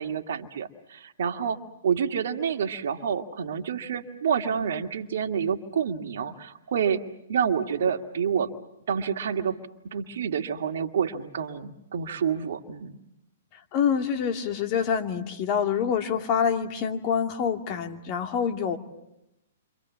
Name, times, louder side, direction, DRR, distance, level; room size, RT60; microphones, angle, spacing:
voice 1, 0.0-7.0 7.3-8.5 8.9-9.6 9.8-12.9, right 7 dB, 65° right, 6 dB, 1.9 m, -28 dB
voice 2, 13.5-18.8, left 7 dB, 40° left, 5 dB, 2.6 m, -26 dB
30.0 x 25.5 x 7.3 m, 0.87 s
hypercardioid pair, 120°, 0 cm